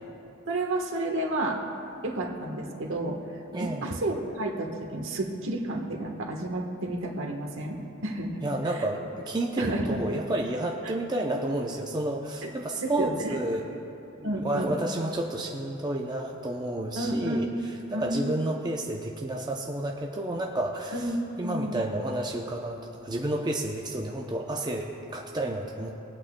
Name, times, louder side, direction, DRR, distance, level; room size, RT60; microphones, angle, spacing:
voice 1, 0.5-1.6 2.0-3.2 3.6-7.8 8.0-8.3 8.7-8.8 9.6-10.0 12.4-12.5 12.8-13.3 14.2-14.7 17.0-17.6 17.9-18.3 20.9-21.8, right 1 dB, 65° right, 1 dB, 1.3 m, -31 dB
voice 2, 3.5-4.0 8.4-13.9 14.2-21.1 21.4-25.9, right 1 dB, 20° right, 0 dB, 0.5 m, -31 dB
21.0 x 8.5 x 2.2 m, 2.8 s
head